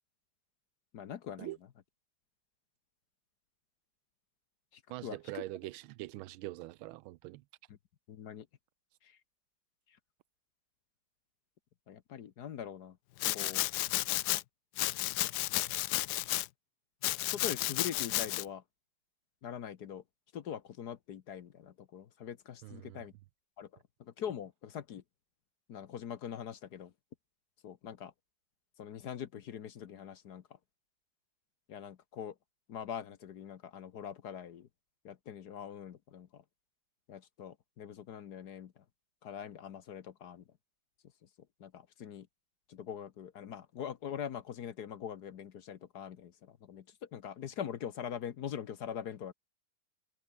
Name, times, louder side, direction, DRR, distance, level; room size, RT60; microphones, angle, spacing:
voice 1, 0.9-1.5 5.0-5.4 8.1-8.5 9.0-9.2 11.9-13.0 13.3-13.6 17.2-18.6 19.4-20.0 20.3-23.1 23.6-23.7 24.0-25.0 25.7-26.9 27.6-28.1 28.8-30.4 31.7-32.3 32.7-34.7 35.0-36.4 37.1-38.8 39.2-40.4 41.6-42.3 42.7-49.3, left 8 dB, 55° left, 1.4 m, -43 dB
voice 2, 4.9-7.4 22.6-23.0, right 17 dB, 80° right, 1.4 m, -43 dB
Domestic sounds home sounds, 13.2-14.4 14.8-16.5 17.0-18.4, left 17 dB, 85° left, 0.8 m, -32 dB
omnidirectional pair, 2.3 m